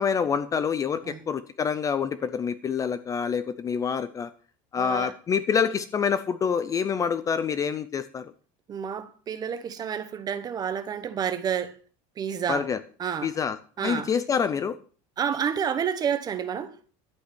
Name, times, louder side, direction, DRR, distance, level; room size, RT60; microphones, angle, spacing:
voice 1, 0.0-4.3 4.7-8.3 12.5-12.8 13.2-14.8, left 6 dB, 20° left, 0.6 m, -27 dB
voice 2, 4.7-5.1 8.7-11.7 12.2-12.6 13.0-13.3 13.8-14.1 15.2-16.8, right 8 dB, 25° right, 1.0 m, -29 dB
11.5 x 8.6 x 6.2 m
cardioid pair, 170°, 17 cm